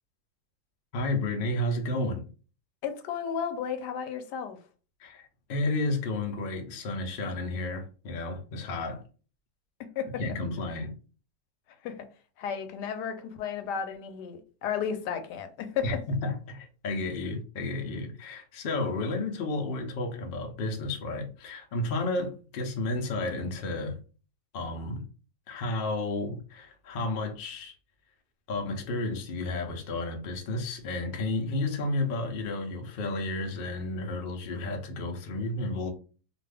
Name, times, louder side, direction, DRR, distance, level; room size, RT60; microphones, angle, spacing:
voice 1, 0.9-2.2 5.0-9.0 10.2-10.9 15.8-24.0 24.5-25.0 25.5-27.7 28.5-35.9, left 2 dB, 55° left, 0.6 m, -32 dB
voice 2, 2.8-4.6 9.8-10.1 11.8-12.1 12.4-15.9, left 7 dB, 85° left, 1.2 m, -33 dB
2.5 x 2.5 x 3.4 m
omnidirectional pair, 1.7 m